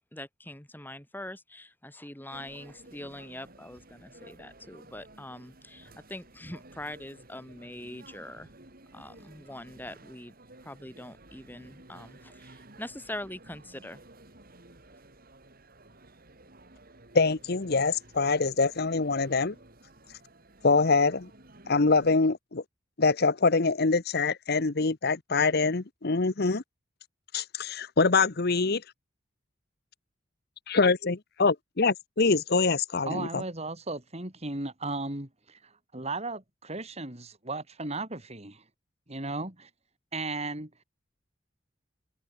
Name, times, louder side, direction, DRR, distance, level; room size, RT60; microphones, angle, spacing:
voice 1, 0.1-8.5 8.9-10.3 10.6-14.0, left 1 dB, 10° left, 5.2 m, -43 dB
sound 1, 2.3-22.2, right 2 dB, 50° right, 4.9 m, -54 dB
voice 2, 17.1-19.5 20.6-21.3 21.7-22.6 23.0-26.6 27.3-28.8 30.7-33.4, left 4 dB, 55° left, 1.0 m, -24 dB
voice 3, 33.0-38.6 39.1-39.7 40.1-40.8, right 2 dB, 35° right, 4.3 m, -36 dB
head